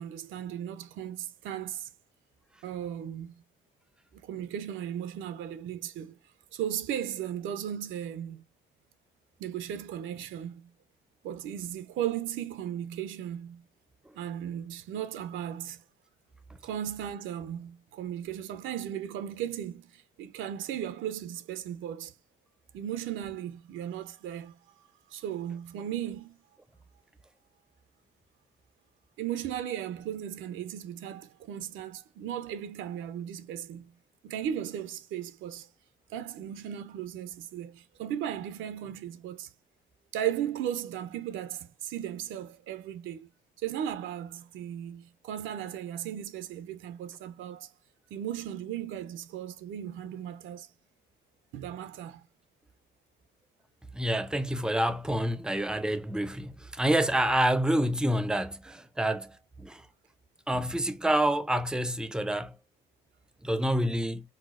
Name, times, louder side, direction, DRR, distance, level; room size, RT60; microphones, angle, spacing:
voice 1, 0.0-1.9 2.6-3.4 4.1-6.2 6.5-8.4 9.4-10.7 11.2-13.6 14.1-15.8 16.6-22.1 22.7-24.6 25.1-26.4 29.2-33.9 34.2-35.7 36.1-39.5 40.1-43.3 43.6-47.7 48.1-50.7 51.5-52.2, right 10 dB, 80° right, 0.4 m, -36 dB
voice 2, 53.9-59.8 60.5-62.5 63.4-64.2, right 1 dB, 5° right, 0.4 m, -28 dB
4.0 x 2.0 x 2.3 m
cardioid pair, 90°, 20 cm